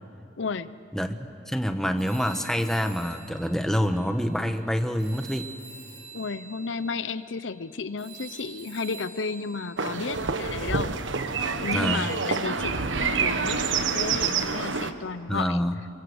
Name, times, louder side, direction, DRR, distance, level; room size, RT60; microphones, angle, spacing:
voice 1, 0.4-0.8 6.1-10.9 11.6-15.6, left 4 dB, 80° left, 14 dB, 0.7 m, -33 dB
voice 2, 0.9-5.5 11.7-12.1 15.3-15.7, equal, ahead, 6 dB, 1.1 m, -27 dB
Telephone, 2.0-4.7 5.0-10.2, right 5 dB, 60° right, 7.5 m, -47 dB
sound 1, 9.8-14.9, right 5 dB, 85° right, 1.3 m, -27 dB
27.0 x 24.0 x 8.0 m, 2.4 s
head